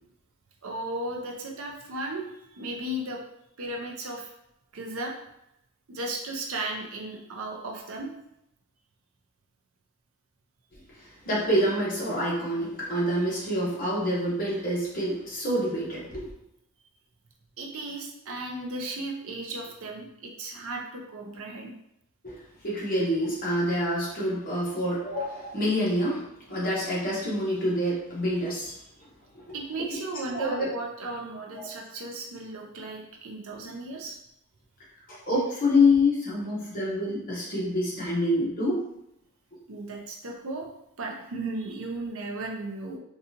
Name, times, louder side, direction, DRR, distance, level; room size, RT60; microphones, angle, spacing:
voice 1, 0.6-3.2 3.6-4.3 4.7-5.1 5.9-8.1 17.6-21.7 29.5-34.2 39.7-40.7 41.0-43.0, right 2 dB, 65° right, 1 dB, 0.6 m, -35 dB
voice 2, 10.7-16.3 22.2-22.4 22.6-28.7 29.3-29.4 30.3-30.6 31.5-31.7 35.1-38.8, left 1 dB, 40° left, -6 dB, 1.1 m, -27 dB
3.8 x 2.4 x 2.8 m, 0.82 s
head